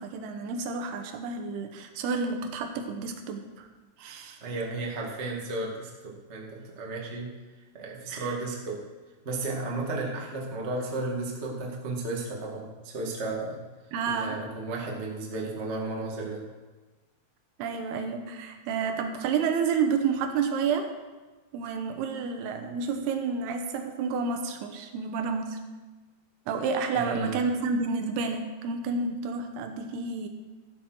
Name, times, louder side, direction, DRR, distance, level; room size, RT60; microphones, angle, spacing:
voice 1, 0.0-3.7 4.0-4.4 8.1-8.3 13.9-14.4 17.6-20.9 21.5-25.6 26.5-30.3, right 5 dB, 75° right, 5 dB, 2.8 m, -30 dB
voice 2, 4.4-7.3 7.7-8.8 9.2-13.6 14.1-16.4 26.9-27.4, right 2 dB, 45° right, -2 dB, 0.8 m, -33 dB
13.5 x 8.3 x 6.2 m, 1.3 s
omnidirectional pair, 4.9 m